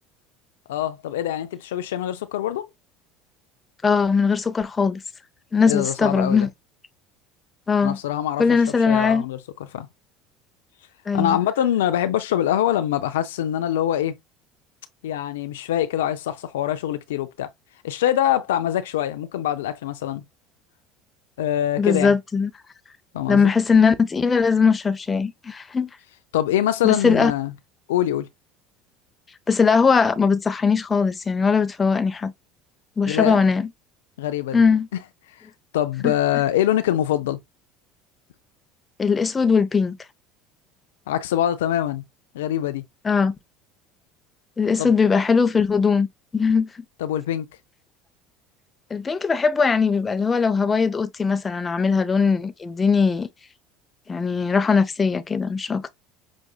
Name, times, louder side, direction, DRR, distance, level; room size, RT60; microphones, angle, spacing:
voice 1, 0.7-2.7 5.7-6.5 7.8-9.9 11.1-14.1 15.0-17.5 17.8-20.2 21.4-22.1 23.1-23.5 26.3-27.5 27.9-28.3 33.1-33.4 34.2-34.6 35.7-37.4 41.1-42.0 42.3-42.8 44.8-44.9 47.0-47.5, left 11 dB, 80° left, 0.4 m, -24 dB
voice 2, 3.8-5.0 5.5-6.5 7.7-8.0 8.4-9.3 11.1-11.4 21.8-22.5 23.3-25.9 26.8-27.3 29.5-32.3 33.0-33.7 34.5-34.9 36.0-36.1 39.0-40.0 43.0-43.4 44.6-46.1 46.3-46.7 48.9-53.3 54.1-55.8, left 5 dB, 25° left, 0.6 m, -20 dB
6.1 x 2.6 x 2.3 m
hypercardioid pair, 75°, 0 cm